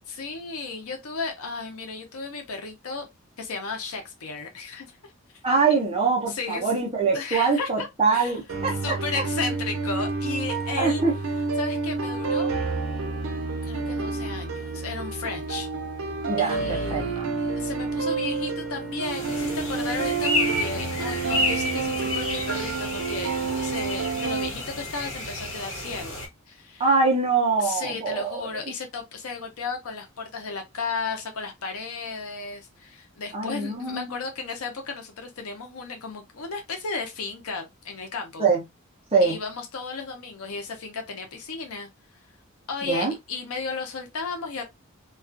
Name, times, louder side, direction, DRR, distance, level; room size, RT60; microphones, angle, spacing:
voice 1, 0.1-3.0 3.4-5.0 6.3-6.6 7.1-7.9 8.1-8.3 8.8-11.0 11.6-12.6 13.6-15.7 16.4-26.8 27.6-38.5 39.2-41.9 42.7-44.6, left 4 dB, 90° left, 0.6 m, -34 dB
voice 2, 5.4-9.0 10.8-11.1 16.3-16.6 16.9-17.3 26.8-28.5 33.3-34.1 38.4-38.6 39.1-39.4 42.8-43.1, right 4 dB, 25° right, 0.6 m, -23 dB
sound 1, 8.5-24.5, right 4 dB, 70° right, 0.5 m, -29 dB
sound 2, 19.0-26.3, left 2 dB, 70° left, 1.3 m, -31 dB
2.4 x 2.3 x 2.4 m
head